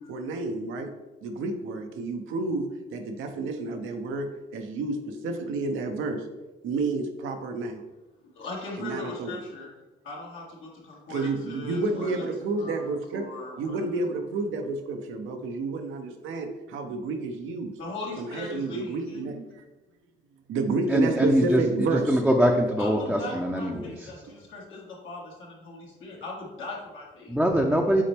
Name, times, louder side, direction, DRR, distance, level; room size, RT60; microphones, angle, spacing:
voice 1, 0.1-0.9 1.2-6.3 6.6-7.8 8.8-9.4 11.1-13.3 13.6-17.7 18.2-19.6 20.5-22.3, right 3 dB, 85° right, 5 dB, 0.8 m, -30 dB
voice 2, 8.3-9.7 10.0-12.2 12.6-12.9 13.1-13.8 17.8-19.2 22.8-27.4, left 2 dB, 80° left, -3 dB, 2.0 m, -39 dB
voice 3, 20.9-24.1 27.3-28.0, equal, ahead, -1 dB, 0.6 m, -23 dB
7.3 x 4.2 x 3.4 m, 1.1 s
cardioid pair, 90°, 20 cm